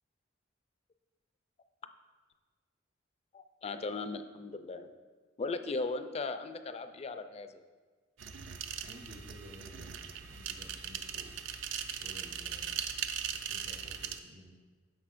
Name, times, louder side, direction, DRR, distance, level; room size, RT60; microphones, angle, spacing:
voice 1, 3.3-4.9 5.4-7.5, left 3 dB, 35° left, 9 dB, 0.3 m, -37 dB
sound 1, 8.2-14.2, right 8 dB, 75° right, 0.5 m, -39 dB
voice 2, 8.8-11.5 12.0-12.8 13.3-14.5, equal, 55° right, -1 dB, 0.8 m, -53 dB
9.8 x 6.2 x 2.5 m, 1.4 s
head